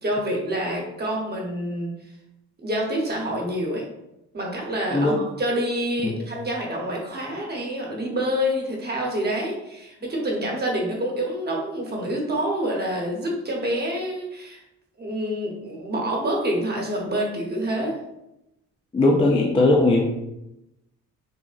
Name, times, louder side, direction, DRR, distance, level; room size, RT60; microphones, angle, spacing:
voice 1, 0.0-1.9 2.6-3.8 4.3-14.6 15.0-18.0, equal, 35° right, -1 dB, 0.8 m, -27 dB
voice 2, 18.9-20.0, left 2 dB, 20° left, 0 dB, 0.3 m, -19 dB
3.6 x 2.1 x 2.4 m, 0.88 s
cardioid pair, 90°, 30 cm